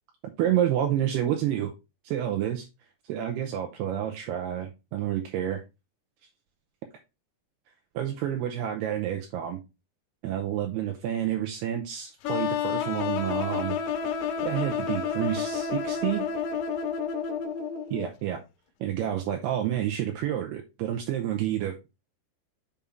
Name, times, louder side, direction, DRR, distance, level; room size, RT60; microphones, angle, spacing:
voice 1, 0.4-1.7 2.0-2.7 3.1-5.6 7.9-9.6 10.2-13.8 14.4-16.3 17.9-18.4 18.8-21.9, right 11 dB, 75° right, 2.7 m, -29 dB
sound 1, 12.2-18.1, left 7 dB, 90° left, 3.2 m, -30 dB
7.2 x 5.4 x 3.5 m
omnidirectional pair, 5.1 m